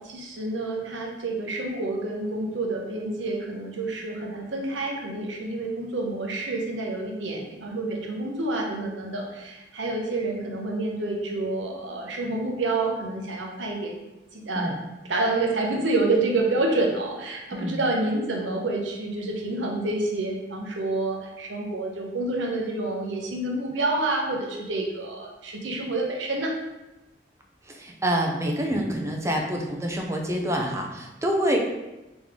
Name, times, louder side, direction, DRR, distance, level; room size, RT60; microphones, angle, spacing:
voice 1, 0.0-13.9 14.3-14.7 15.1-26.6, right 2 dB, 85° right, 0 dB, 0.8 m, -28 dB
voice 2, 27.7-31.6, equal, 15° right, 1 dB, 0.5 m, -27 dB
3.9 x 3.0 x 3.6 m, 1.0 s
head